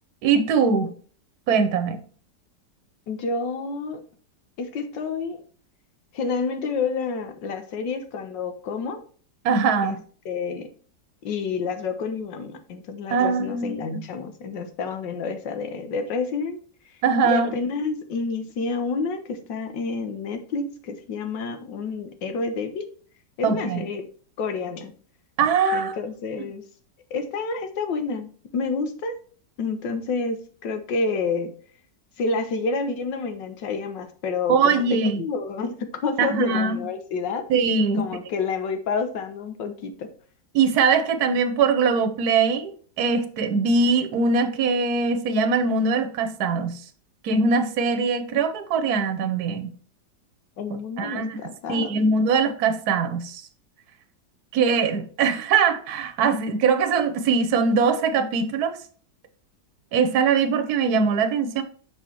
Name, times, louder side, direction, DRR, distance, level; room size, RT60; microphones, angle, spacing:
voice 1, 0.2-0.9 1.5-2.0 9.4-10.0 13.1-14.0 17.0-17.5 23.4-23.8 25.4-26.0 34.5-35.2 36.2-36.8 37.5-38.0 40.5-42.7 43.0-46.8 47.2-49.7 51.0-51.4 51.7-53.4 54.5-58.8 59.9-61.6, right 5 dB, 65° right, 1.3 m, -22 dB
voice 2, 3.1-4.0 4.6-5.4 6.1-9.0 9.8-10.0 10.2-10.7 11.2-16.6 17.2-22.9 23.4-24.0 24.4-24.9 25.7-26.6 27.1-29.2 29.6-31.5 32.2-37.4 38.0-40.1 50.6-51.9, left 4 dB, 90° left, 1.7 m, -29 dB
6.6 x 4.8 x 4.5 m
omnidirectional pair, 1.9 m